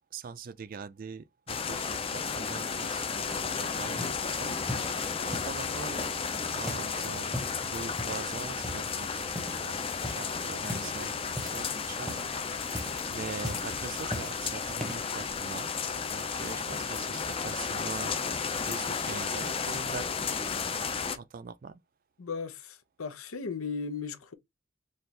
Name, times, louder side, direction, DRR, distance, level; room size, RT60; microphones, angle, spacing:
voice 1, 0.1-4.9 5.2-6.1 6.5-9.8 10.1-18.2 18.5-20.3 21.1-21.8, right 5 dB, 40° right, 0.3 m, -43 dB
sound 1, 1.5-21.2, left 5 dB, 25° left, 0.4 m, -33 dB
sound 2, 3.3-3.6 4.0-4.2 4.7-5.6 6.0-7.0 7.2-7.6 8.0-8.3 8.6-9.0 9.3-9.7 9.9-10.3 10.7-11.7 12.0-12.3 12.6-13.1 13.4-14.4 14.8-15.1 15.8-15.9, equal, ahead, 0.8 m, -39 dB
voice 2, 22.2-24.3, left 5 dB, 85° left, 0.7 m, -36 dB
4.3 x 2.4 x 3.2 m
head